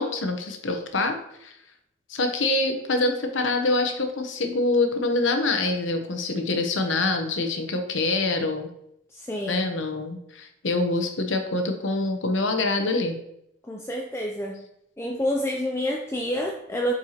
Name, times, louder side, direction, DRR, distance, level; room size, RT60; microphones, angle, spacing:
voice 1, 0.0-1.6 2.1-8.7 9.5-13.2, left 2 dB, 70° left, 5 dB, 0.9 m, -25 dB
voice 2, 9.1-9.7 13.6-14.6 15.0-16.9, equal, 15° left, 0 dB, 0.4 m, -28 dB
7.6 x 4.7 x 2.9 m, 0.77 s
head